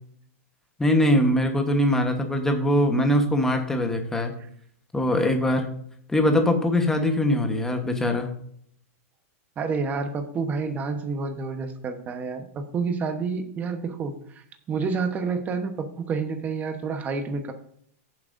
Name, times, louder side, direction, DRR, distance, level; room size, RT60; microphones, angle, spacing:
voice 1, 0.8-4.3 4.9-5.7 6.1-8.3, left 1 dB, 5° left, 4 dB, 1.1 m, -22 dB
voice 2, 9.6-17.5, right 4 dB, 20° right, 7 dB, 1.0 m, -29 dB
14.5 x 7.4 x 2.6 m, 0.66 s
supercardioid pair, 150°, 8 cm